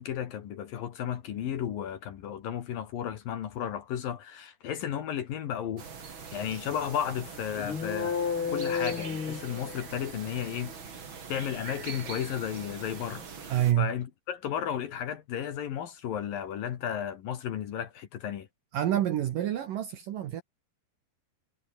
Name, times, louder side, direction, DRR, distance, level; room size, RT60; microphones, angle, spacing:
voice 1, 0.0-5.8 6.1-8.1 8.5-10.8 11.3-18.5, left 9 dB, 60° left, 2.9 m, -34 dB
sound 1, 5.8-13.7, right 5 dB, 35° right, 2.5 m, -43 dB
sound 2, 7.5-10.1, left 6 dB, 35° left, 2.5 m, -32 dB
voice 2, 13.5-13.9 18.7-20.4, right 11 dB, 65° right, 2.3 m, -27 dB
omnidirectional pair, 5.3 m